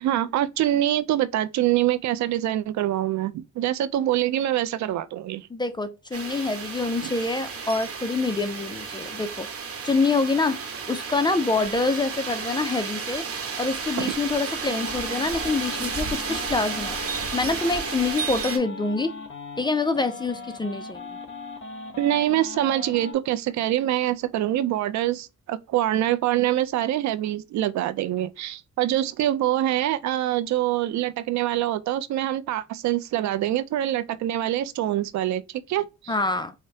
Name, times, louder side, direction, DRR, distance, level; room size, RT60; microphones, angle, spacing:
voice 1, 0.0-5.5 7.0-7.1 14.0-14.1 22.0-36.1, right 13 dB, 70° right, 0.5 m, -25 dB
voice 2, 5.5-9.5 9.8-10.6 10.9-13.3 13.6-19.1 19.6-21.0 36.1-36.5, left 3 dB, 15° left, 0.4 m, -26 dB
sound 1, 6.1-18.6, right 5 dB, 50° right, 1.0 m, -32 dB
sound 2, 14.6-23.1, left 4 dB, 40° left, 1.0 m, -39 dB
4.8 x 2.1 x 2.7 m
cardioid pair, 90°, 30 cm